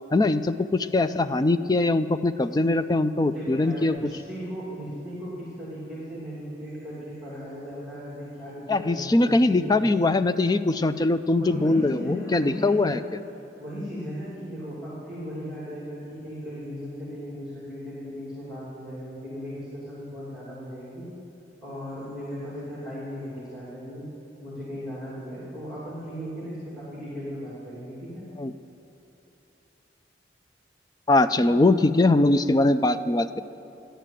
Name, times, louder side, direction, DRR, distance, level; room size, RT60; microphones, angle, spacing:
voice 1, 0.1-4.0 8.7-13.2 28.4-28.5 31.1-33.4, left 2 dB, 20° left, 10 dB, 0.3 m, -22 dB
voice 2, 3.2-9.8 11.4-13.1 13.4-21.1 21.6-24.1 24.4-28.3, equal, 5° right, -8 dB, 3.0 m, -37 dB
13.5 x 10.0 x 7.5 m, 2.8 s
head